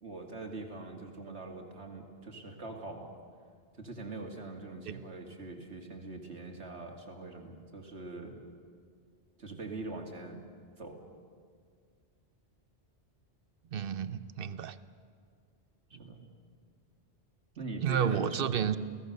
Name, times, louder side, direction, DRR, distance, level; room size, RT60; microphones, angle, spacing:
voice 1, 0.0-3.1 3.8-8.4 9.4-10.4 10.8-11.0 16.0-16.3 17.6-18.8, right 2 dB, 75° right, 2 dB, 2.6 m, -42 dB
voice 2, 13.7-14.8 17.8-18.8, right 8 dB, 60° right, 13 dB, 0.9 m, -31 dB
30.0 x 17.0 x 6.7 m, 2.1 s
omnidirectional pair, 1.1 m